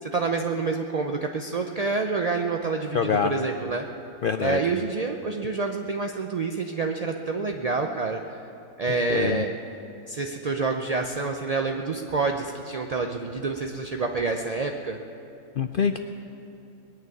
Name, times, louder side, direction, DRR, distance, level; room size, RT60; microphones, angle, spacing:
voice 1, 0.0-3.8 4.4-8.2 8.8-9.5 10.1-15.0, right 4 dB, 50° right, 3 dB, 0.4 m, -27 dB
voice 2, 2.9-3.5 4.2-4.6 8.9-9.4 15.6-16.0, left 6 dB, 75° left, 7 dB, 0.5 m, -25 dB
20.5 x 6.8 x 9.5 m, 2.9 s
omnidirectional pair, 1.5 m